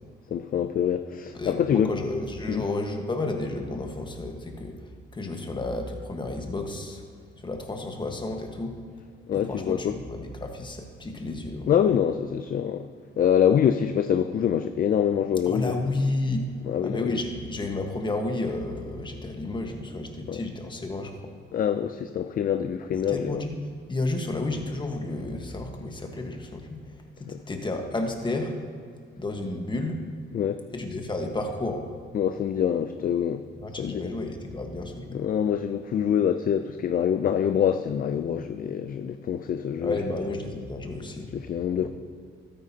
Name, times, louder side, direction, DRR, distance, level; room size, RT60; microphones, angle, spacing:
voice 1, 0.3-1.9 2.5-2.7 9.3-9.9 11.7-12.9 13.2-15.8 16.7-17.2 20.3-20.4 21.5-23.4 27.3-27.4 30.3-30.6 32.1-33.4 33.8-34.1 35.1-40.0 41.3-41.9, left 8 dB, 45° left, 9 dB, 0.4 m, -25 dB
voice 2, 1.3-4.8 5.1-7.0 7.4-8.8 9.3-11.7 15.4-16.5 16.8-21.2 23.1-23.6 23.9-26.8 27.2-28.5 29.2-30.0 30.7-31.8 33.6-35.2 39.8-41.3 41.8-41.9, left 2 dB, 25° left, 3 dB, 1.4 m, -31 dB
13.0 x 9.5 x 2.8 m, 2.2 s
cardioid pair, 90°, 20 cm